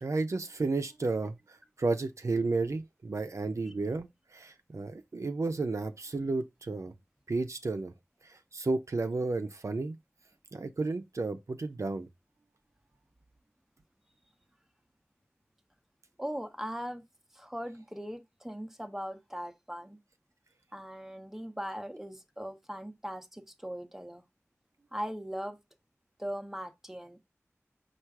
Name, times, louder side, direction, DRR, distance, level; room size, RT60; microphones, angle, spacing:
voice 1, 0.0-6.9 7.3-7.9 8.2-10.0 10.5-12.1, right 3 dB, 75° right, 0.5 m, -32 dB
voice 2, 16.2-17.0 17.3-20.0 20.7-24.2 24.9-25.6 26.2-27.2, equal, 5° right, 0.7 m, -39 dB
4.5 x 2.4 x 4.6 m
wide cardioid pair, 50°, 5 cm